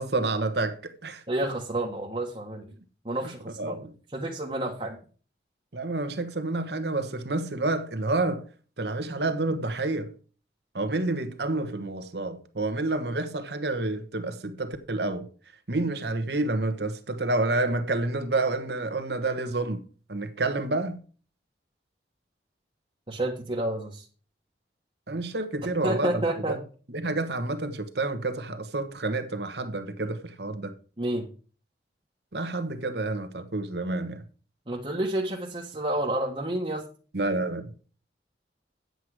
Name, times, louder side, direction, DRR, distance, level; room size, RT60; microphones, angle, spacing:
voice 1, 0.0-1.2 3.6-3.9 5.7-8.4 8.8-10.1 10.7-15.3 15.7-19.8 20.1-21.0 25.1-26.2 26.5-26.6 26.9-30.7 32.3-34.2 37.1-37.7, right 2 dB, 70° right, 1.3 m, -29 dB
voice 2, 1.3-2.7 3.0-3.8 4.1-5.0 23.1-24.1 25.8-26.6 31.0-31.3 34.7-36.8, right 1 dB, 30° right, 1.2 m, -29 dB
9.5 x 8.0 x 4.8 m
head